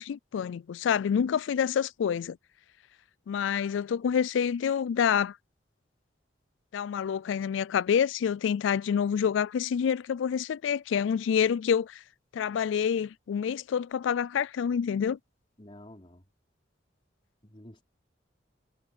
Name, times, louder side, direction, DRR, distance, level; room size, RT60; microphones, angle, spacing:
voice 1, 0.0-2.4 3.3-5.3 6.7-12.0 12.3-15.2, left 7 dB, 75° left, 0.3 m, -27 dB
voice 2, 15.6-16.3 17.4-17.8, left 1 dB, 30° left, 4.1 m, -50 dB
head